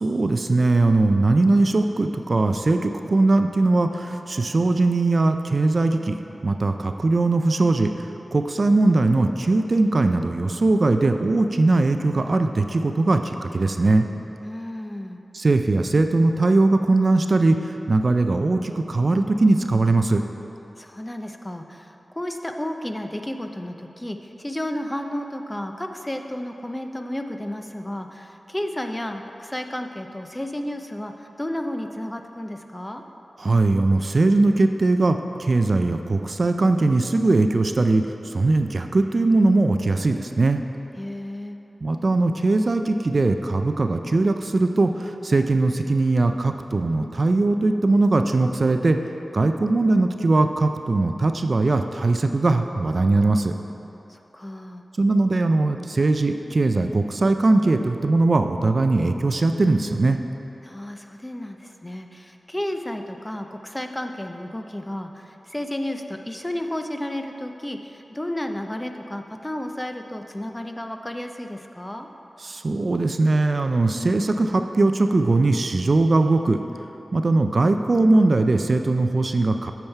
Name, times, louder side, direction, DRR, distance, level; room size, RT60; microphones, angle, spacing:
voice 1, 0.0-6.2 6.4-7.9 8.3-14.1 15.3-20.2 33.4-40.6 41.8-49.0 49.3-53.5 55.0-60.2 72.4-76.6 77.1-79.7, right 2 dB, 50° right, 7 dB, 0.4 m, -20 dB
voice 2, 14.4-15.2 20.8-33.0 41.0-41.6 54.1-54.8 60.6-72.1, left 1 dB, 15° left, 5 dB, 0.5 m, -32 dB
8.7 x 7.1 x 4.5 m, 3.0 s
wide cardioid pair, 100°, 0 cm